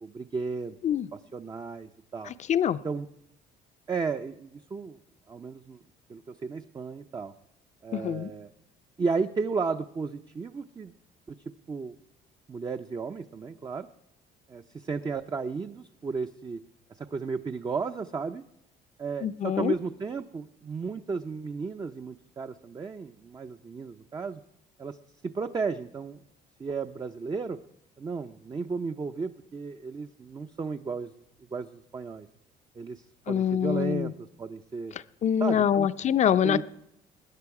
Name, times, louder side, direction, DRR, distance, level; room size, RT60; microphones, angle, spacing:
voice 1, 0.0-2.3 2.8-3.1 3.9-5.0 5.3-5.8 6.1-7.3 7.8-8.5 9.0-10.9 11.7-11.9 12.5-13.9 14.5-16.6 16.9-18.4 19.0-24.4 24.8-25.0 25.2-26.2 26.6-27.6 28.0-31.1 31.5-32.3 32.8-34.9 35.4-35.9 36.4-36.6, right 4 dB, 25° right, 0.5 m, -34 dB
voice 2, 2.3-2.8 7.9-8.3 19.2-19.7 33.3-34.1 35.2-36.6, left 9 dB, 45° left, 0.5 m, -25 dB
21.0 x 9.7 x 4.8 m
cardioid pair, 110°, 17 cm